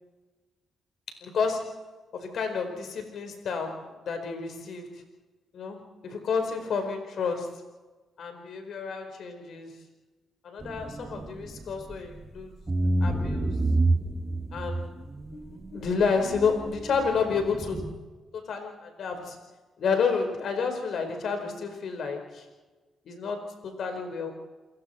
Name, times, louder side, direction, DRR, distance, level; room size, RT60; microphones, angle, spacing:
voice 1, 1.1-1.7 2.1-4.9 5.5-7.6 8.2-9.8 10.4-12.5 13.0-13.6 14.5-14.9 15.3-17.9 18.3-19.4 19.8-22.5 23.0-24.3, left 5 dB, 65° left, 5 dB, 4.8 m, -30 dB
sound 1, 10.6-12.3 12.7-17.9, right 2 dB, 25° right, 2.4 m, -29 dB
28.5 x 22.5 x 4.5 m, 1.2 s
cardioid pair, 80°, 0 cm